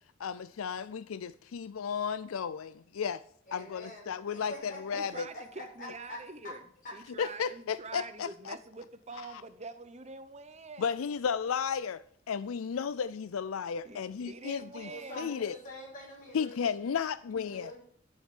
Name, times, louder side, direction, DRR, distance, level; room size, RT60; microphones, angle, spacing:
voice 1, 0.2-3.2 3.5-5.3 7.2-8.6 9.3-9.4 10.8-14.9 15.2-15.5 16.3-17.7, left 6 dB, 85° left, 0.4 m, -34 dB
voice 2, 3.5-4.1 4.3-6.2 6.4-6.5 6.8-6.9 14.8-16.8 17.4-17.7, left 1 dB, 40° left, 7.6 m, -45 dB
voice 3, 4.9-6.6 6.9-10.9 13.8-15.3, right 3 dB, 35° right, 0.8 m, -45 dB
11.5 x 7.2 x 8.5 m
head